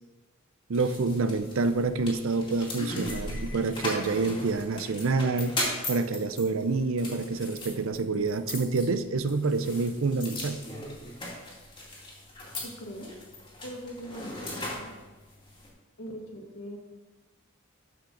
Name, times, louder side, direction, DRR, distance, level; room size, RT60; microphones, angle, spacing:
sound 1, 0.7-15.7, left 1 dB, 25° left, 2.2 m, -38 dB
voice 1, 0.7-10.6, right 3 dB, 70° right, 11 dB, 0.6 m, -27 dB
voice 2, 12.6-13.1 13.6-14.9 16.0-16.8, equal, 75° left, 0 dB, 1.9 m, -41 dB
13.0 x 5.7 x 3.9 m, 1.2 s
head